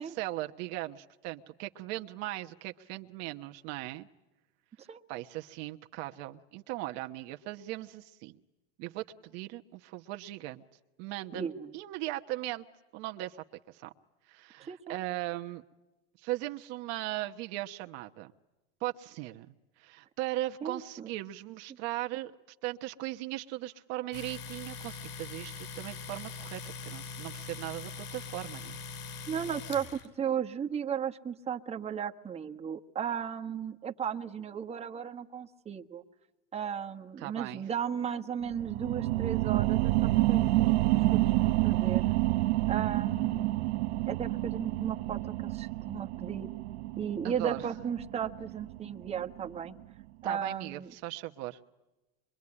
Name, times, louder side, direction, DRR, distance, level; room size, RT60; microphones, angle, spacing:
voice 1, 0.0-4.1 5.1-8.4 8.8-10.6 11.0-11.5 11.7-12.6 12.9-13.9 14.3-15.6 16.2-18.3 18.8-19.5 19.8-22.3 22.6-28.8 37.2-37.6 47.2-47.7 50.2-51.6, right 16 dB, 55° right, 6 dB, 1.1 m, -38 dB
voice 2, 11.3-11.7 14.6-15.0 20.6-21.1 29.3-36.0 36.5-41.3 41.6-42.2 42.7-43.6 44.1-46.5 47.0-49.8 50.2-50.9, right 8 dB, 20° right, 3 dB, 1.4 m, -35 dB
Domestic sounds home sounds, 24.1-30.1, left 5 dB, 55° left, 5.9 m, -42 dB
sound 1, 38.4-49.6 50.0-50.1, right 17 dB, 80° right, 0.9 m, -29 dB
25.5 x 24.0 x 9.7 m, 1.1 s
supercardioid pair, 130°, 31 cm